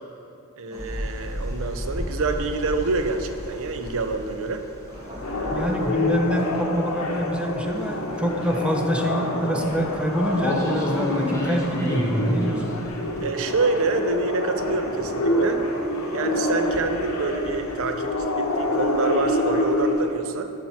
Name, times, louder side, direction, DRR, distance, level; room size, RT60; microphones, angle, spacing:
voice 1, 0.6-4.6 5.3-5.7 13.2-15.6 16.1-18.1 18.4-20.5, right 3 dB, 65° right, 8 dB, 0.5 m, -27 dB
sound 1, 0.7-14.3 14.7-20.0, left 1 dB, 15° left, 1.0 m, -33 dB
sound 2, 4.9-16.9, equal, 25° right, 1.7 m, -40 dB
sound 3, 5.2-19.9, left 1 dB, 80° left, 0.9 m, -27 dB
voice 2, 5.5-12.7, equal, 5° right, 2 dB, 0.5 m, -26 dB
7.3 x 4.2 x 5.8 m, 2.8 s
head